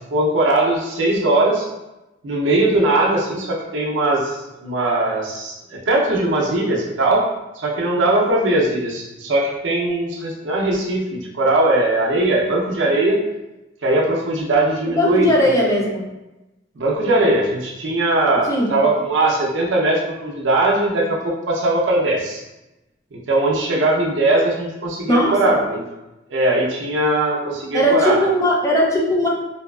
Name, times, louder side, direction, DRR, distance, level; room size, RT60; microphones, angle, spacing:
voice 1, 0.0-1.7 2.2-7.2 7.6-13.2 13.8-15.3 15.6-15.7 16.8-22.4 23.1-25.8 26.3-28.2, right 2 dB, 80° right, -2 dB, 0.6 m, -20 dB
voice 2, 14.9-16.1 18.5-18.7 25.1-25.6 27.7-29.3, equal, 15° left, -2 dB, 0.4 m, -18 dB
2.7 x 2.3 x 2.3 m, 0.99 s
head